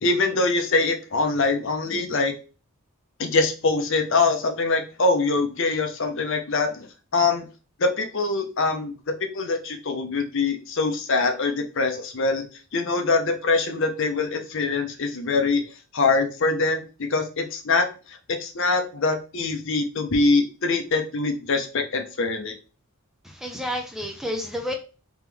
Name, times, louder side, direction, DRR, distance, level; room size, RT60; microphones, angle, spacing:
voice 1, 0.0-2.3 3.2-7.5 7.8-12.5 12.7-15.7 15.9-22.6, left 3 dB, 55° left, 6 dB, 0.7 m, -24 dB
voice 2, 23.2-24.7, equal, ahead, 3 dB, 0.4 m, -30 dB
3.5 x 3.0 x 3.4 m, 0.34 s
head